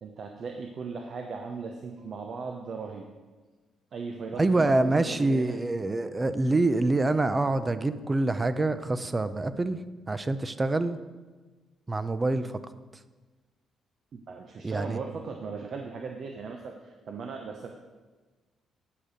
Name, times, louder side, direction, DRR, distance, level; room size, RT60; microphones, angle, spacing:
voice 1, 0.0-3.1 3.9-5.6 14.1-17.7, right 5 dB, 55° right, 3 dB, 0.8 m, -38 dB
voice 2, 4.4-9.8 10.1-11.0 11.9-12.6 14.6-15.0, right 2 dB, 25° right, 12 dB, 0.5 m, -26 dB
9.8 x 5.1 x 6.3 m, 1.3 s
cardioid pair, 90°, 0 cm